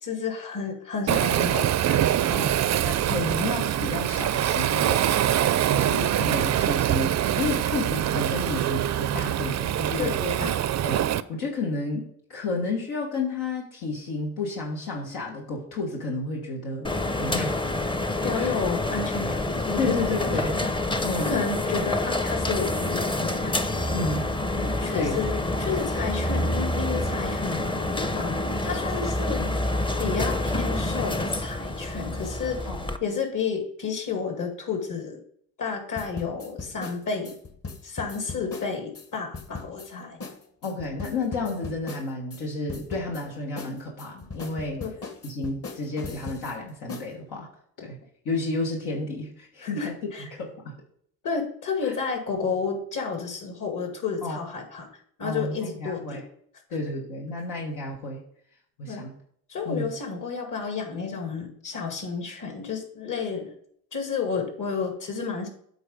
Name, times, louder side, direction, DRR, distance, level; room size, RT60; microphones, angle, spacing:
voice 1, 0.0-1.7 10.0-10.6 18.2-19.9 20.2-20.3 20.9-23.5 24.8-25.3 25.6-29.4 30.0-32.7 33.0-35.2 35.6-37.3 37.8-40.2 44.8-44.9 49.6-50.3 51.2-54.9 55.2-56.2 58.9-59.1 59.5-63.5 63.9-65.5, left 5 dB, 55° left, 4 dB, 2.2 m, -31 dB
Waves surf, 1.1-11.2, right 11 dB, 50° right, 0.5 m, -24 dB
voice 2, 1.9-10.2 10.8-16.9 17.2-17.5 18.3-18.5 19.8-20.6 21.0-21.3 23.9-25.4 25.7-25.8 29.4-29.5 32.6-32.8 39.9-40.2 40.6-44.8 45.2-47.5 47.8-48.0 48.2-49.9 50.3-50.7 51.8-51.9 54.2-54.4 55.2-56.2 56.7-58.2 58.8-59.1 59.6-59.9, left 3 dB, 85° left, -2 dB, 1.5 m, -32 dB
sound 1, 16.8-33.0, left 1 dB, 15° left, 0.6 m, -27 dB
sound 2, 36.0-39.1 39.3-39.9 40.2-40.4 40.6-42.4 42.7-43.2 43.6-46.5 46.9-47.1, left 4 dB, 40° left, 1.3 m, -38 dB
8.1 x 4.0 x 5.2 m, 0.64 s
cardioid pair, 75°, 37 cm